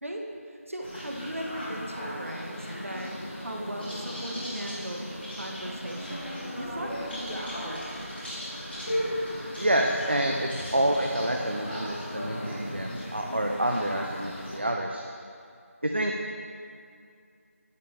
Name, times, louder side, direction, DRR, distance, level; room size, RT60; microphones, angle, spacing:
voice 1, 0.0-6.3 6.6-7.8, equal, 60° right, 1 dB, 1.1 m, -38 dB
sound 1, 0.8-14.6, equal, 45° left, 2.1 m, -36 dB
voice 2, 9.6-15.0 15.8-16.3, right 1 dB, 45° right, 2 dB, 0.5 m, -28 dB
9.6 x 6.9 x 3.3 m, 2.4 s
figure-of-eight pair, 175°, 8 cm